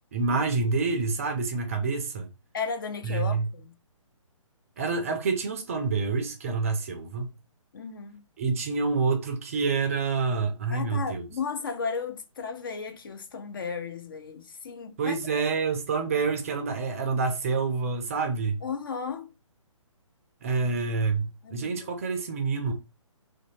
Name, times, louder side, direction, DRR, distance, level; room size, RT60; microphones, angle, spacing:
voice 1, 0.1-2.3 3.0-3.5 4.8-7.3 8.4-11.2 15.0-18.6 20.4-22.7, right 4 dB, 25° right, 0.4 m, -27 dB
voice 2, 2.5-3.7 7.7-8.3 10.7-15.4 18.6-19.3 21.4-21.9, left 5 dB, 40° left, 0.4 m, -35 dB
2.5 x 2.1 x 2.9 m
figure-of-eight pair, 135°, 17 cm